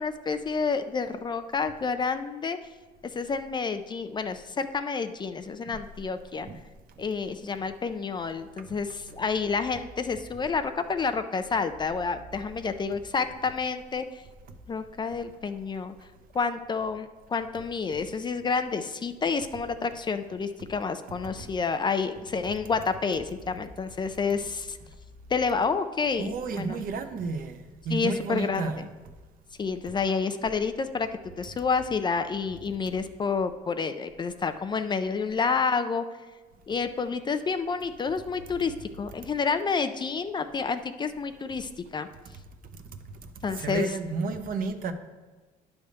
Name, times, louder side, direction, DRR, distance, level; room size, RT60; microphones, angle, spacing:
voice 1, 0.0-2.6 3.1-6.5 7.0-14.2 14.7-15.9 16.3-24.8 25.3-26.8 27.9-28.9 29.6-31.1 31.4-36.0 36.7-42.1 43.4-43.9, left 5 dB, 25° left, 9 dB, 0.4 m, -29 dB
voice 2, 26.2-28.8 42.7-43.0 43.5-44.9, right 4 dB, 55° right, 8 dB, 0.8 m, -32 dB
9.7 x 3.5 x 6.5 m, 1.3 s
cardioid pair, 110°, 17 cm